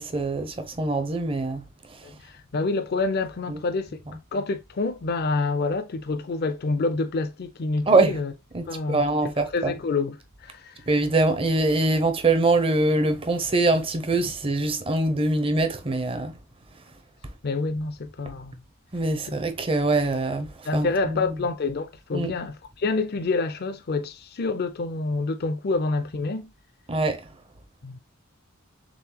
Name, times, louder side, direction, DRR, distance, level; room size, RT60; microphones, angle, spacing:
voice 1, 0.0-1.6 3.5-3.6 7.9-8.2 8.5-9.7 10.9-16.3 18.9-21.3 22.1-22.3 26.9-27.2, right 2 dB, 25° right, 0.6 m, -23 dB
voice 2, 2.0-4.0 4.3-8.3 8.7-9.1 9.4-10.8 17.4-18.6 19.3-19.4 20.7-26.5 27.8-28.0, left 3 dB, 50° left, 0.5 m, -27 dB
3.9 x 3.6 x 2.8 m
head